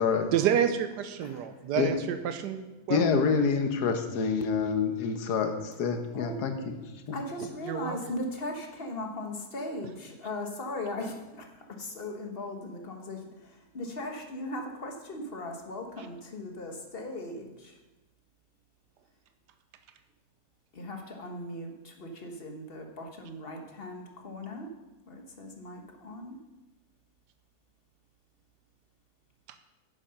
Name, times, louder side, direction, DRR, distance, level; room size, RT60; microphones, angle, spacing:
voice 1, 0.3-3.1 7.6-8.0 16.0-16.1, right 9 dB, 85° right, 9 dB, 1.3 m, -29 dB
voice 2, 2.9-6.7 7.1-7.2, left 5 dB, 70° left, 6 dB, 1.6 m, -27 dB
voice 3, 7.1-11.5 11.8-13.2 13.7-17.7 20.7-24.7 25.1-26.4, left 1 dB, 35° left, 3 dB, 1.4 m, -38 dB
9.8 x 7.6 x 5.8 m, 1.1 s
omnidirectional pair, 1.8 m